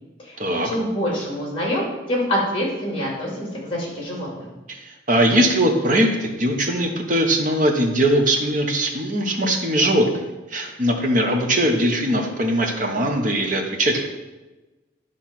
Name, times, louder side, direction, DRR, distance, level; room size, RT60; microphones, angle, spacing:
voice 1, 0.2-4.4, equal, 30° left, -3 dB, 2.6 m, -26 dB
voice 2, 4.7-14.1, right 1 dB, 40° right, 2 dB, 1.1 m, -21 dB
10.5 x 3.4 x 6.0 m, 1.1 s
head